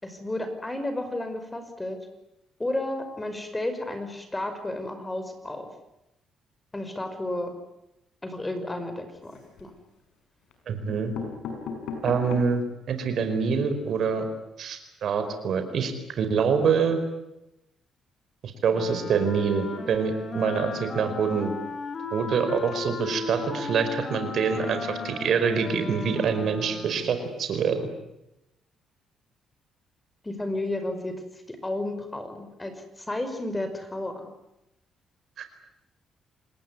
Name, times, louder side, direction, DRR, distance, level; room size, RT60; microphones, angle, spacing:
voice 1, 0.0-2.0 2.6-5.7 6.7-7.5 8.2-9.7 30.2-32.7 33.0-34.3, left 1 dB, 15° left, 8 dB, 5.5 m, -32 dB
sound 1, 9.1-9.8 10.5-10.6 10.9-12.7 13.2-13.3 13.5-13.6 13.9-14.0, left 5 dB, 80° left, 6.3 m, -37 dB
voice 2, 10.7-11.1 12.0-14.3 14.6-17.0 18.4-21.5 22.1-27.9 35.4-35.5, right 6 dB, 65° right, 8 dB, 4.9 m, -25 dB
Wind instrument woodwind instrument, 18.7-27.2, left 3 dB, 45° left, 5.6 m, -36 dB
28.0 x 19.5 x 9.7 m, 0.89 s
cardioid pair, 90°, 0 cm